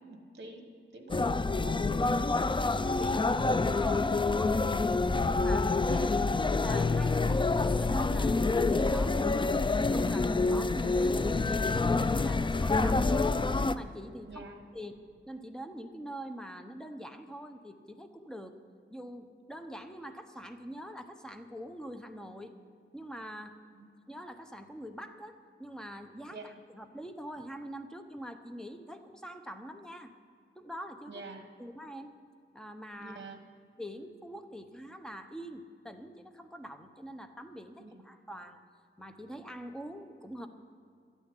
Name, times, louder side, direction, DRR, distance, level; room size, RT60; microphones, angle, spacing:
voice 1, 0.0-1.8 5.8-6.1 14.3-14.6 23.7-23.9 26.3-26.5 31.1-31.5 33.0-33.4 37.8-38.0, right 3 dB, 55° right, 5 dB, 1.5 m, -47 dB
sound 1, 1.1-13.7, left 3 dB, 25° left, 0.4 m, -27 dB
voice 2, 3.0-4.9 5.3-6.0 6.3-9.4 9.8-14.4 14.7-14.9 15.3-18.5 18.9-22.6 22.9-23.6 24.1-30.1 30.6-31.2 31.6-32.1 32.5-33.2 33.8-38.6 39.0-40.5, equal, 5° left, 6 dB, 0.9 m, -44 dB
12.5 x 7.2 x 9.8 m, 2.3 s
wide cardioid pair, 100°, 21 cm